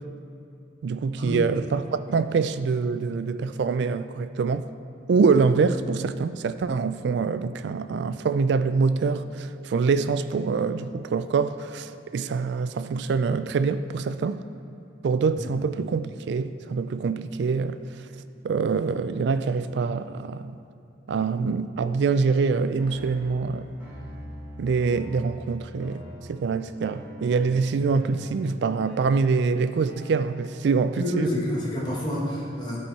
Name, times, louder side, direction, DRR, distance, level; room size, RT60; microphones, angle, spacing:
voice 1, 0.8-4.7 5.1-14.4 15.0-17.8 18.4-20.6 21.1-23.7 24.6-26.0 26.3-31.3, right 5 dB, 60° right, 0.3 m, -25 dB
sound 1, 22.8-30.8, left 1 dB, 10° right, 1.8 m, -43 dB
voice 2, 31.0-32.8, equal, 20° left, 1.2 m, -28 dB
12.0 x 4.3 x 4.6 m
head